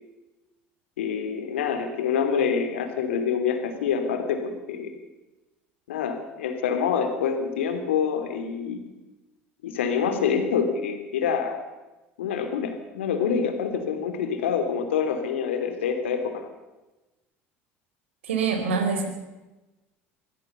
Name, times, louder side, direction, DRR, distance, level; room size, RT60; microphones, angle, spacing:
voice 1, 1.0-4.9 5.9-8.8 9.6-11.6 12.2-16.5, left 6 dB, 80° left, 7 dB, 3.0 m, -26 dB
voice 2, 18.3-19.1, right 5 dB, 80° right, 6 dB, 4.1 m, -24 dB
23.5 x 16.0 x 6.9 m, 1.1 s
hypercardioid pair, 70°, 6 cm